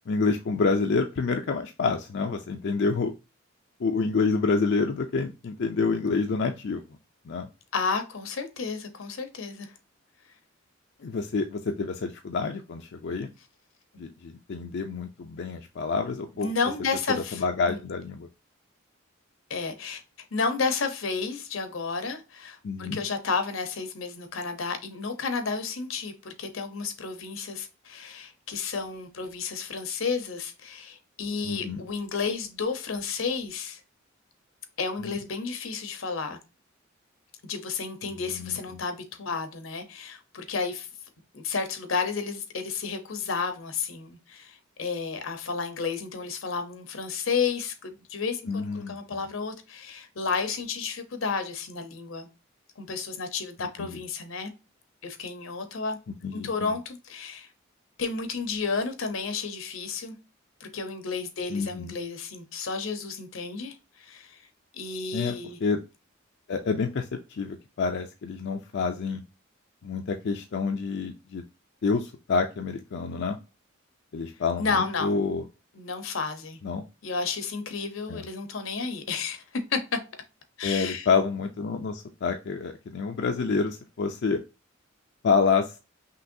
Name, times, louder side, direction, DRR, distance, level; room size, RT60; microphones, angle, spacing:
voice 1, 0.1-3.1 3.8-6.8 7.3-7.5 11.0-13.3 14.0-16.5 17.1-18.3 22.6-23.0 31.4-31.8 35.0-35.2 38.3-38.6 48.5-49.0 53.8-54.0 56.2-56.7 61.5-61.9 65.1-65.3 65.6-65.8 66.5-69.2 69.8-71.4 71.8-73.4 74.1-75.4 76.6-76.8 78.1-78.2 80.6-84.4 85.2-85.8, left 4 dB, 60° left, 0.4 m, -28 dB
voice 2, 7.7-9.7 16.4-17.8 19.5-20.0 20.3-33.8 34.8-36.4 37.4-40.9 41.3-52.3 52.8-54.5 55.0-56.0 56.3-57.5 58.0-60.1 60.6-64.4 64.7-65.6 74.6-75.1 75.7-76.6 77.0-79.4 79.7-80.0 80.6-81.1, left 5 dB, 80° left, 0.9 m, -32 dB
5.6 x 3.0 x 2.7 m
head